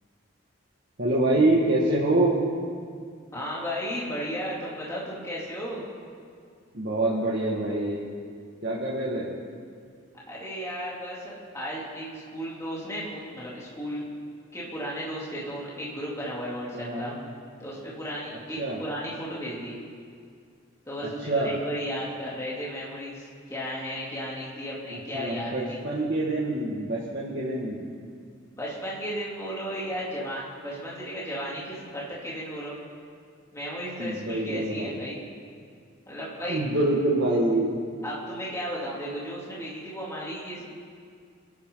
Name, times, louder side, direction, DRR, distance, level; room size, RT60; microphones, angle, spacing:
voice 1, 1.0-2.3 6.7-8.0 8.6-9.3 16.7-17.2 18.6-18.8 21.2-21.6 24.9-27.9 34.0-35.0 36.5-37.7, right 2 dB, 50° right, -6 dB, 2.1 m, -25 dB
voice 2, 3.3-5.8 10.3-14.0 14.5-17.1 17.6-19.8 20.9-25.8 28.5-32.7 33.5-35.2 36.1-36.6 38.0-40.6, equal, 15° left, -7 dB, 3.4 m, -34 dB
27.0 x 12.0 x 4.0 m, 2.2 s
head